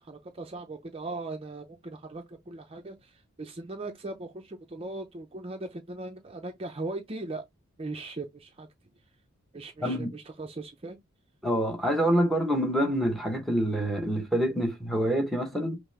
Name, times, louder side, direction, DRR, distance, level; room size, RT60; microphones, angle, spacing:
voice 1, 0.0-7.4 7.8-8.7 9.5-11.0, right 2 dB, 25° right, 0.5 m, -39 dB
voice 2, 9.8-10.1 11.4-15.8, equal, ahead, 0.8 m, -26 dB
5.8 x 2.0 x 3.2 m
head